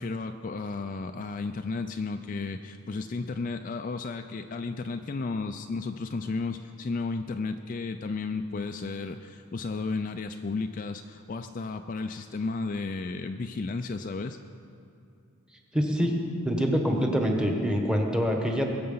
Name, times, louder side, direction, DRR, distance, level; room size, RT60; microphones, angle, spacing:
voice 1, 0.0-14.4, left 3 dB, 40° left, 7 dB, 0.4 m, -33 dB
voice 2, 15.7-16.2 16.4-18.7, equal, 5° right, 1 dB, 1.3 m, -25 dB
21.0 x 7.7 x 5.6 m, 2.7 s
head